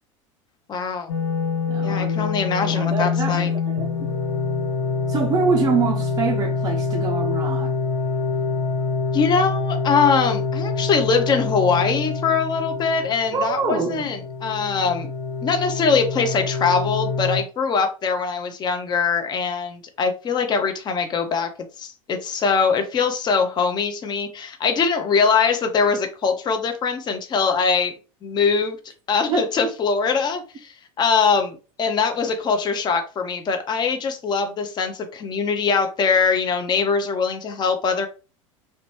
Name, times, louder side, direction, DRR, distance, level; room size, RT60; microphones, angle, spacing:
voice 1, 0.7-1.1 1.8-3.5 9.1-15.1 15.4-21.5 21.8-27.9 28.2-28.8 29.1-38.1, left 5 dB, 25° left, 0.5 m, -22 dB
sound 1, 1.1-17.4, left 4 dB, 75° left, 0.6 m, -25 dB
voice 2, 1.7-2.3 2.6-3.9 5.1-7.8 13.3-14.1 29.3-29.7, right 5 dB, 20° right, 0.4 m, -25 dB
2.5 x 2.2 x 3.0 m
hypercardioid pair, 95°, 17 cm